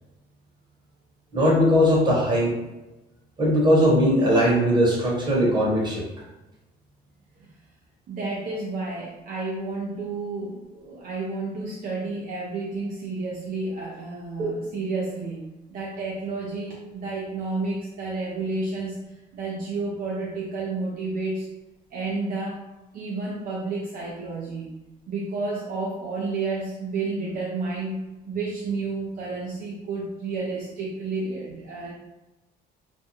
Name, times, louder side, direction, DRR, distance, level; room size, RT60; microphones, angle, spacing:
voice 1, 1.3-2.5 3.4-6.0 14.4-14.5, equal, 25° right, -5 dB, 1.1 m, -19 dB
voice 2, 8.1-21.5 21.9-22.7 22.9-24.7 25.1-28.0 28.3-31.9, right 3 dB, 60° right, -4 dB, 0.6 m, -31 dB
2.5 x 2.2 x 2.9 m, 1.0 s
cardioid pair, 110°, 17 cm